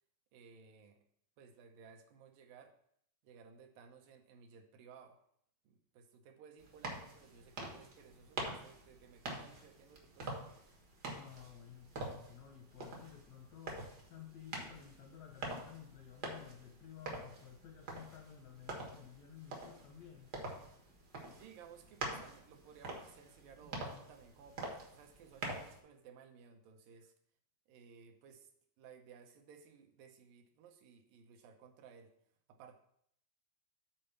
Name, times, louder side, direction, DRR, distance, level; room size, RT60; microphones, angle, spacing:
voice 1, 0.3-1.0 1.4-2.8 3.2-5.2 5.6-10.3 21.3-27.1 27.7-28.5 28.8-32.1 32.5-32.8, right 6 dB, 80° right, 4 dB, 2.6 m, -58 dB
sound 1, 6.6-25.8, right 2 dB, 65° right, 1.0 m, -46 dB
voice 2, 11.1-20.3, left 9 dB, 80° left, 3 dB, 1.6 m, -54 dB
7.5 x 4.4 x 6.6 m, 0.69 s
omnidirectional pair, 3.9 m